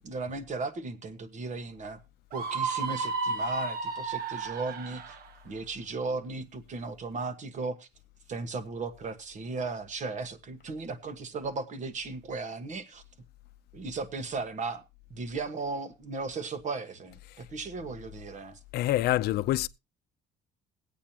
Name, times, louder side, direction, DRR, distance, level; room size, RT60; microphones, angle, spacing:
voice 1, 0.0-2.0 2.3-5.2 5.4-7.9 8.3-13.0 13.7-14.8 15.1-18.6, right 4 dB, 45° right, 1.4 m, -36 dB
Screaming, 2.3-5.3, right 4 dB, 65° right, 1.5 m, -32 dB
voice 2, 18.7-19.7, left 15 dB, 70° left, 0.6 m, -26 dB
21.5 x 8.5 x 2.9 m
cardioid pair, 110°, 17 cm